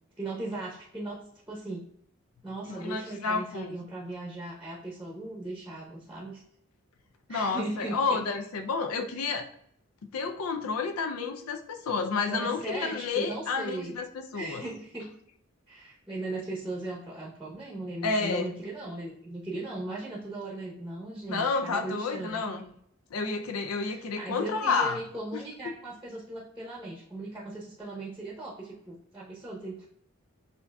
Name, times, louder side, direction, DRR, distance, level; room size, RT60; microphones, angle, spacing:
voice 1, 0.2-1.2 1.5-1.8 2.4-6.4 7.3-8.2 12.3-13.9 14.3-15.0 15.7-22.6 23.9-29.9, right 2 dB, 5° right, -4 dB, 0.7 m, -38 dB
voice 2, 2.7-3.8 7.3-9.5 10.1-14.6 18.0-18.5 21.3-22.7 23.1-25.0, left 4 dB, 90° left, 6 dB, 0.4 m, -30 dB
6.7 x 2.6 x 2.3 m, 0.69 s
head